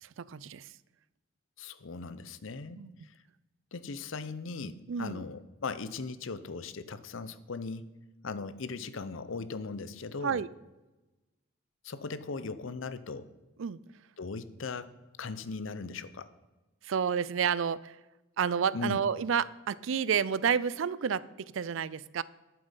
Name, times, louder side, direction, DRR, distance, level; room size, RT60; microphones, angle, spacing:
voice 1, 0.0-0.7 2.8-2.9 4.9-5.2 10.2-10.5 13.6-13.8 16.8-18.0 18.4-22.2, right 7 dB, 70° right, 19 dB, 0.4 m, -30 dB
voice 2, 1.6-3.1 3.7-7.9 8.2-10.4 11.8-13.3 14.2-14.9 15.2-16.3 18.7-19.0, left 4 dB, 70° left, 14 dB, 0.7 m, -38 dB
11.5 x 7.8 x 5.6 m, 1.1 s
head